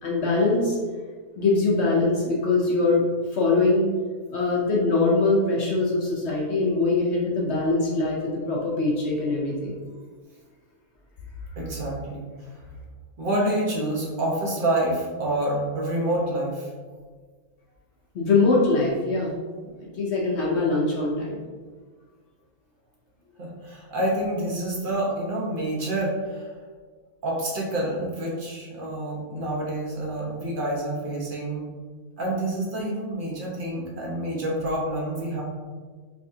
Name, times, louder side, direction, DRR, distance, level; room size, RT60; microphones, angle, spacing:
voice 1, 0.0-0.8 1.4-3.0 3.3-3.9 4.3-8.2 8.5-9.8 18.1-19.3 19.9-21.4, left 3 dB, 60° left, -4 dB, 0.8 m, -22 dB
voice 2, 11.6-12.2 13.2-16.7 23.4-26.5 27.2-31.7 32.2-35.4, right 1 dB, 40° right, -4 dB, 0.9 m, -27 dB
3.5 x 3.3 x 2.7 m, 1.5 s
omnidirectional pair, 1.6 m